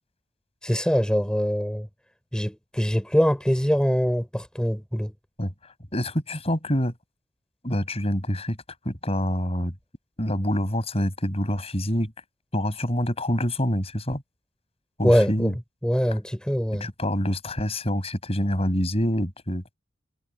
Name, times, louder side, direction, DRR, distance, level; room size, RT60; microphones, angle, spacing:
voice 1, 0.6-1.9 2.3-5.1 15.0-15.5 15.8-16.9, equal, 5° left, 4.2 m, -23 dB
voice 2, 5.4-6.9 7.6-8.6 8.8-9.7 10.2-12.1 12.5-14.2 15.0-15.5 16.8-19.6, equal, 30° left, 7.9 m, -26 dB
head